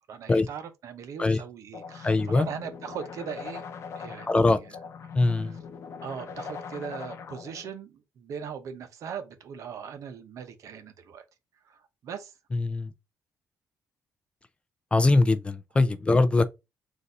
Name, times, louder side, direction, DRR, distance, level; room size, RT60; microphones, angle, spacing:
voice 1, 0.1-4.7 5.3-5.6 6.0-11.2 11.6-12.4 15.8-15.9, right 7 dB, 65° right, 0.8 m, -40 dB
sound 1, 1.7-7.7, left 6 dB, 50° left, 0.7 m, -41 dB
voice 2, 2.0-2.5 4.3-4.6 5.1-5.6 12.5-12.9 14.9-16.5, left 2 dB, 20° left, 0.4 m, -22 dB
4.0 x 2.6 x 4.0 m
cardioid pair, 120°, 6 cm